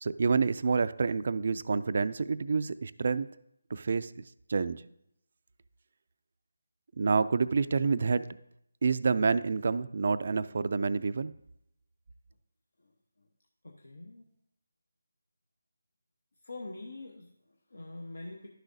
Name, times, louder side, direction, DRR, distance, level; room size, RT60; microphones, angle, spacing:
voice 1, 0.0-3.3 3.7-4.2 4.5-4.8 7.0-8.3 8.8-11.3, right 4 dB, 50° right, 14 dB, 0.3 m, -28 dB
voice 2, 13.6-14.3 16.4-18.5, left 2 dB, 75° left, 2 dB, 0.8 m, -45 dB
11.5 x 6.2 x 2.6 m, 0.76 s
figure-of-eight pair, 160°, 0 cm